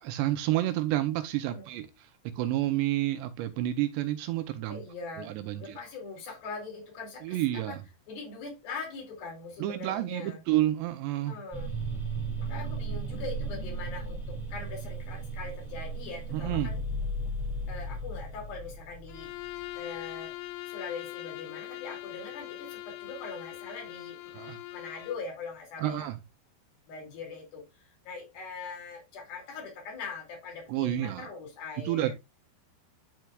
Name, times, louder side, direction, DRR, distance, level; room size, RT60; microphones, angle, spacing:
voice 1, 0.0-4.8 5.4-5.8 7.2-7.8 9.6-11.4 16.3-16.7 24.3-24.6 25.8-26.2 30.7-31.3 31.8-32.1, right 14 dB, 80° right, 2.6 m, -29 dB
voice 2, 4.7-7.8 8.1-10.4 11.3-11.7 12.4-16.8 17.7-19.3 19.8-20.3 20.7-24.2 24.7-26.1 26.9-32.1, left 4 dB, 55° left, 4.0 m, -42 dB
sound 1, 11.5-19.6, right 2 dB, ahead, 1.6 m, -35 dB
Bowed string instrument, 19.1-25.3, left 16 dB, 90° left, 2.3 m, -41 dB
12.5 x 4.5 x 2.3 m
omnidirectional pair, 5.3 m